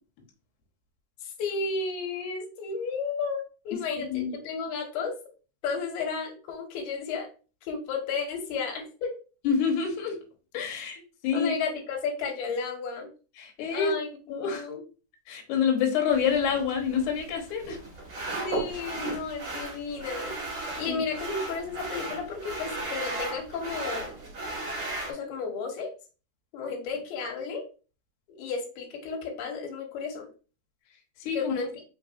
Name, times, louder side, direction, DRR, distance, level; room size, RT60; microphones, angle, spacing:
voice 1, 1.2-5.1 5.6-7.3 7.6-9.1 11.3-13.1 13.7-14.1 14.4-14.8 18.4-24.1 25.1-25.9 26.5-27.6 28.3-30.3 31.3-31.7, left 5 dB, 85° left, 2 dB, 2.8 m, -33 dB
voice 2, 4.0-4.3 9.4-10.2 10.5-11.6 13.4-13.9 14.3-14.6 15.3-17.8 20.9-21.0 31.3-31.5, left 6 dB, 65° left, 0 dB, 2.2 m, -27 dB
sound 1, 16.1-25.1, right 2 dB, 40° right, 2.3 m, -35 dB
5.3 x 3.5 x 2.5 m, 0.34 s
omnidirectional pair, 4.4 m